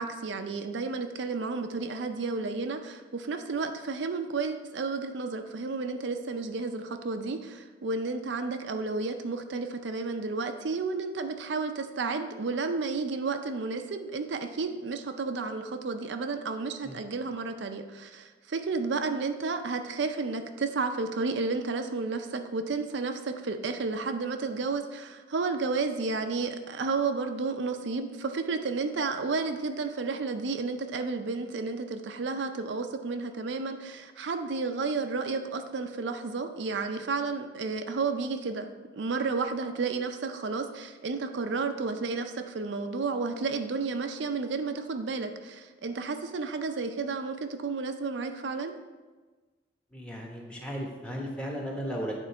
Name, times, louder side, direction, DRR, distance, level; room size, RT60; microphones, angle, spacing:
voice 1, 0.0-48.7, right 4 dB, 80° right, 6 dB, 0.5 m, -32 dB
voice 2, 49.9-52.2, equal, 5° left, -1 dB, 1.0 m, -35 dB
9.0 x 3.8 x 4.4 m, 1.3 s
head